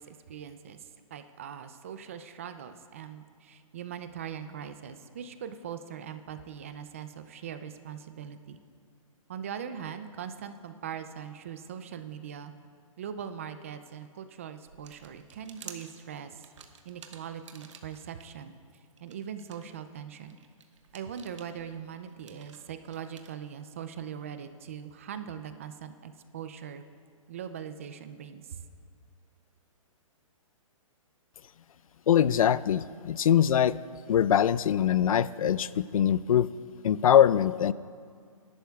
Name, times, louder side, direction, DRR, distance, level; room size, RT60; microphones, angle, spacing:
voice 1, 0.0-8.6 9.3-12.5 13.0-16.4 16.8-18.5 19.0-20.4 20.9-26.8 27.3-28.6, right 8 dB, 25° right, 10 dB, 0.4 m, -41 dB
sound 1, 14.7-18.2 18.7-23.3, right 7 dB, 60° right, 1.1 m, -51 dB
voice 2, 32.1-33.8 34.1-36.5 36.8-37.7, left 9 dB, 80° left, 19 dB, 0.4 m, -23 dB
24.5 x 11.5 x 2.3 m, 2.1 s
hypercardioid pair, 165°, 18 cm